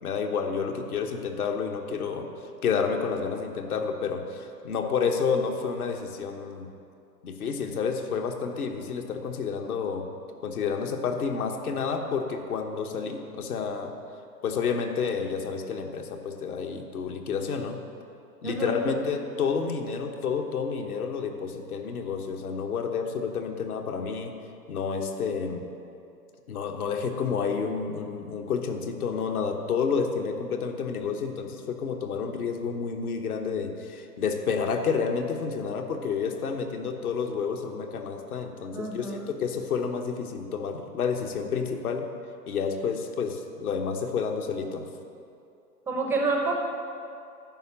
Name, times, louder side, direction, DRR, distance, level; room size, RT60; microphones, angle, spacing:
voice 1, 0.0-2.3 2.6-6.7 7.2-10.0 10.4-13.9 14.4-17.8 18.4-24.3 24.7-25.6 26.5-42.1 42.5-44.8, left 5 dB, 65° left, 4 dB, 1.2 m, -30 dB
voice 2, 18.4-18.8 38.7-39.2 45.9-46.5, right 3 dB, 5° right, 1 dB, 0.5 m, -28 dB
11.0 x 5.0 x 7.6 m, 2.6 s
figure-of-eight pair, 105°, 48 cm